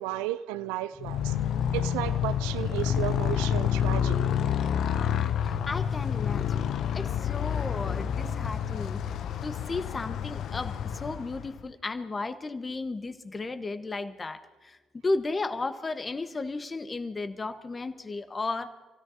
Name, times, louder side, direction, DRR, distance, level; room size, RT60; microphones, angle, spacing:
voice 1, 0.0-1.3 1.7-4.3, right 15 dB, 75° right, 0.4 m, -33 dB
Motorcycle, 1.0-11.7, left 9 dB, 60° left, 0.7 m, -29 dB
voice 2, 5.7-6.7 6.9-9.0 9.4-14.4 14.6-18.7, left 3 dB, 30° left, 1.4 m, -34 dB
27.5 x 16.5 x 2.9 m
hypercardioid pair, 45°, 0 cm